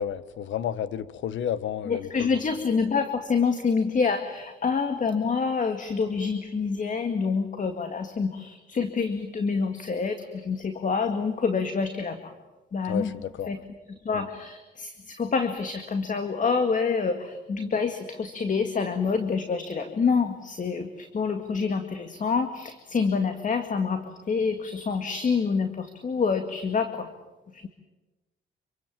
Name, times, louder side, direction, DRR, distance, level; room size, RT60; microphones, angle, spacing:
voice 1, 0.0-2.4 12.8-13.7 14.1-14.3, left 9 dB, 75° left, 15 dB, 1.3 m, -32 dB
voice 2, 1.9-12.3 12.7-13.1 13.5-13.6 14.1-27.1 27.5-27.7, left 5 dB, 40° left, 7 dB, 2.1 m, -27 dB
27.0 x 24.0 x 7.5 m, 1.1 s
cardioid pair, 90°, 20 cm